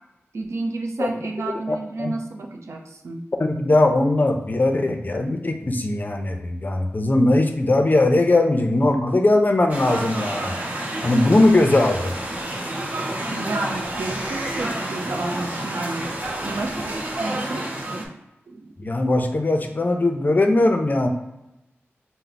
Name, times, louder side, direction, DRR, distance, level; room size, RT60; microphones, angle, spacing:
voice 1, 0.3-3.2 13.3-16.2 16.4-18.1 18.5-18.7, right 2 dB, 85° right, 1 dB, 0.6 m, -31 dB
voice 2, 1.7-2.1 3.4-10.5 11.0-12.1 18.8-21.1, left 2 dB, 40° left, 5 dB, 0.5 m, -20 dB
sound 1, 9.7-18.1, right 1 dB, 35° right, 0.9 m, -29 dB
4.4 x 2.1 x 3.9 m, 0.92 s
wide cardioid pair, 70°, 5 cm